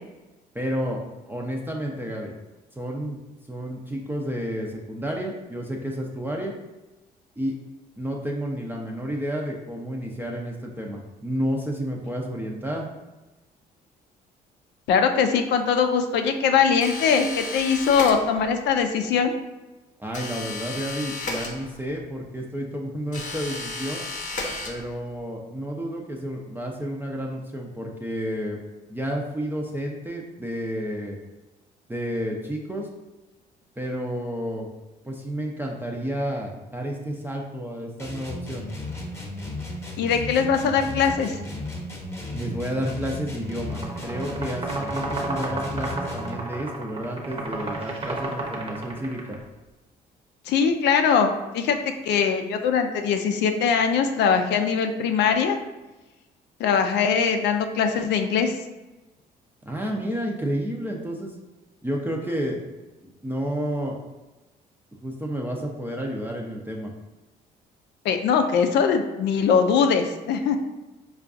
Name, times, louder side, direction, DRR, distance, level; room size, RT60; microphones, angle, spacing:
voice 1, 0.5-2.3 2.8-3.2 3.5-6.5 7.4-7.6 8.0-12.9 20.0-24.0 24.7-28.6 28.9-31.2 31.9-32.9 33.8-34.7 35.0-38.6 42.3-49.2 59.7-61.3 61.8-62.6 63.0-64.0 65.0-66.9, equal, 10° right, -1 dB, 0.5 m, -31 dB
voice 2, 14.9-19.3 40.0-41.4 50.5-55.6 56.6-58.5 68.0-70.6, left 6 dB, 70° left, 6 dB, 0.4 m, -21 dB
sound 1, 16.8-18.6 20.1-22.0 23.1-25.2, left 3 dB, 40° left, 0.8 m, -34 dB
sound 2, 38.0-46.5, left 1 dB, 15° left, 0.9 m, -35 dB
sound 3, 43.6-49.4, right 2 dB, 30° right, 0.9 m, -32 dB
4.5 x 2.3 x 2.5 m, 1.1 s
supercardioid pair, 60°, 19 cm